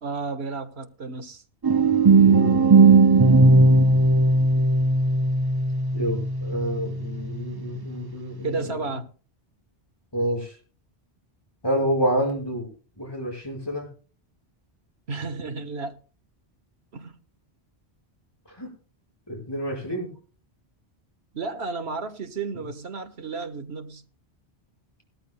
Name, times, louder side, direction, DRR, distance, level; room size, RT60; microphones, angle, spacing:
voice 1, 0.0-1.4 8.4-9.1 15.1-16.0 16.9-17.1 21.3-24.0, right 4 dB, 75° right, 1.6 m, -32 dB
sound 1, 1.6-7.5, right 3 dB, 30° right, 0.4 m, -18 dB
voice 2, 2.2-2.9 5.9-8.7 10.1-10.6 11.6-12.7 13.0-13.9 18.5-18.7 19.3-20.1 22.5-22.6, equal, 20° left, 5.8 m, -28 dB
20.0 x 13.0 x 2.2 m
omnidirectional pair, 1.1 m